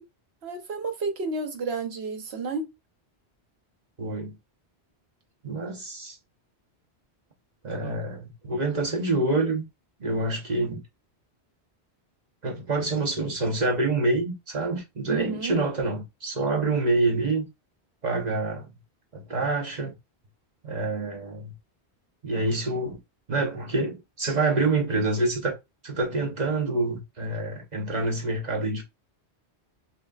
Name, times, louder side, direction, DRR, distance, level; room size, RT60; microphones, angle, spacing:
voice 1, 0.4-2.7 15.1-15.6, right 4 dB, 70° right, 1.2 m, -31 dB
voice 2, 4.0-4.3 5.4-6.2 7.6-9.6 10.0-10.8 12.4-17.5 18.0-18.7 19.1-19.9 20.6-21.5 22.2-23.0 23.3-25.6 25.8-28.8, right 2 dB, 45° right, 0.9 m, -27 dB
5.7 x 2.6 x 2.3 m
omnidirectional pair, 1.1 m